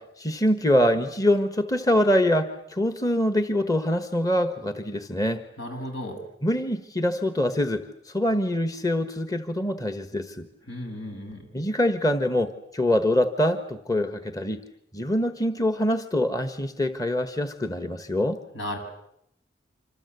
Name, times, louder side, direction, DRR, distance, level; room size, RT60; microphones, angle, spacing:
voice 1, 0.0-5.4 6.4-10.5 11.5-14.6 14.9-18.4, left 1 dB, 20° left, 8 dB, 1.3 m, -24 dB
voice 2, 5.6-6.2 10.7-11.5 18.5-18.8, left 1 dB, 75° left, 4 dB, 7.6 m, -34 dB
27.0 x 26.5 x 8.2 m, 0.75 s
head